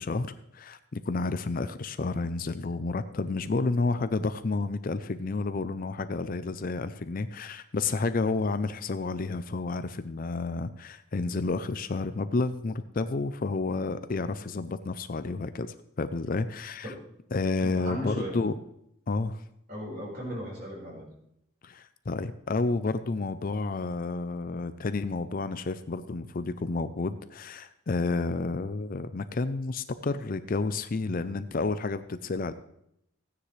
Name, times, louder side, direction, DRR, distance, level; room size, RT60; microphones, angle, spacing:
voice 1, 0.0-16.9 17.3-18.6 19.1-19.4 21.6-32.5, left 3 dB, 40° left, 12 dB, 0.4 m, -30 dB
voice 2, 17.6-18.4 19.7-21.1, equal, 40° right, -3 dB, 4.6 m, -36 dB
16.0 x 9.8 x 3.2 m, 0.77 s
head